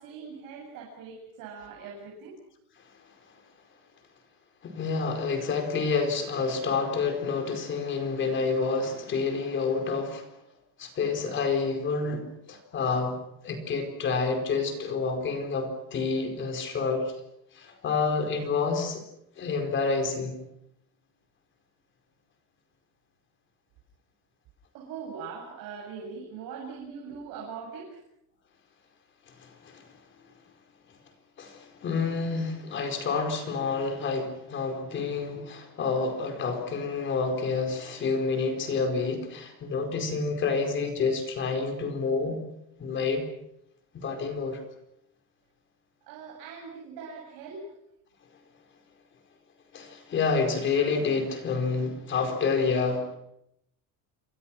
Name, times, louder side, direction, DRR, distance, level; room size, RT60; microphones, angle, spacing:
voice 1, 0.0-2.3 24.7-28.0 46.0-47.7, right 5 dB, 65° right, -1 dB, 7.8 m, -41 dB
voice 2, 4.6-10.3 10.8-13.2 13.4-17.1 17.5-19.0 19.4-20.4 29.3-29.8 31.4-42.4 42.8-43.2 43.9-44.6 49.7-53.2, left 4 dB, 35° left, 6 dB, 4.8 m, -28 dB
28.0 x 25.5 x 6.2 m, 0.79 s
cardioid pair, 175°, 35 cm